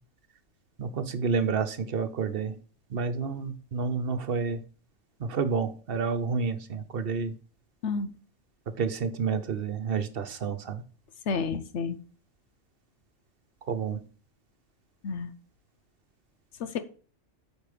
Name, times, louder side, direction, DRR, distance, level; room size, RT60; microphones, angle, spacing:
voice 1, 0.8-2.5 2.9-4.6 5.2-7.3 8.8-10.8 13.7-14.0, right 5 dB, 55° right, 1.1 m, -29 dB
voice 2, 11.3-12.0 15.0-15.3 16.6-16.8, left 5 dB, 80° left, 1.1 m, -30 dB
8.5 x 5.1 x 5.1 m
omnidirectional pair, 1.2 m